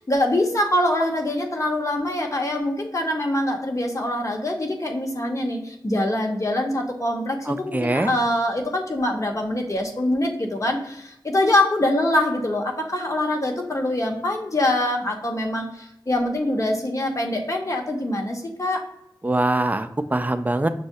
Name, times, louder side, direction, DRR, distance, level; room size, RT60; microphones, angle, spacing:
voice 1, 0.0-18.9, left 1 dB, 40° left, 2 dB, 0.9 m, -24 dB
voice 2, 7.5-8.1 19.2-20.7, right 2 dB, 20° right, 9 dB, 0.4 m, -23 dB
6.3 x 2.1 x 2.7 m, 0.82 s
cardioid pair, 40°, 8 cm